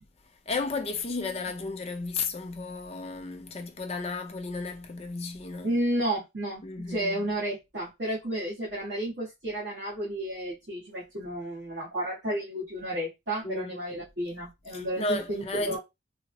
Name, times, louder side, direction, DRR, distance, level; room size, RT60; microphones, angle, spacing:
voice 1, 0.5-5.7 6.6-7.2 13.4-13.8 14.7-15.8, left 3 dB, 35° left, 0.5 m, -33 dB
voice 2, 5.6-15.8, right 1 dB, 70° right, 1.3 m, -32 dB
3.7 x 2.0 x 3.0 m
head